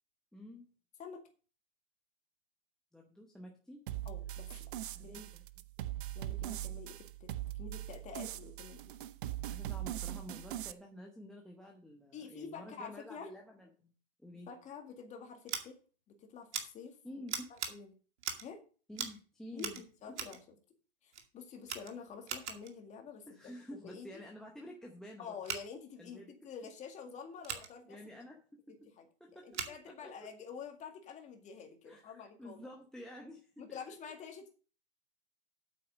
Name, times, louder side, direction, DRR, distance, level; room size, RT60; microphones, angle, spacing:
voice 1, 0.3-0.7 2.9-3.8 4.9-5.4 9.5-13.9 14.2-14.5 17.0-17.5 18.9-19.8 20.1-20.2 23.3-25.3 26.0-26.3 27.9-28.4 29.2-30.3 31.8-33.8, left 1 dB, ahead, 2 dB, 0.8 m, -50 dB
sound 1, 3.9-10.7, right 13 dB, 45° right, 0.7 m, -41 dB
voice 2, 4.1-4.7 5.0-5.3 6.1-8.8 12.1-13.3 14.5-15.8 16.1-17.0 17.5-17.9 18.4-18.6 19.5-19.7 20.0-20.4 21.0-23.3 23.8-24.1 25.2-28.0 29.0-29.1 29.4-32.7 33.6-34.5, left 6 dB, 20° left, 4 dB, 2.0 m, -48 dB
Scissors, 15.5-15.6 16.5-16.6 17.3-17.7 18.2-18.5 18.9-19.2 19.6-20.4 21.1-21.3 21.6-22.7 25.4-25.6 27.4-27.7 29.5-29.8, right 7 dB, 65° right, 2.2 m, -40 dB
8.6 x 7.8 x 5.3 m, 0.38 s
hypercardioid pair, 135°, 37 cm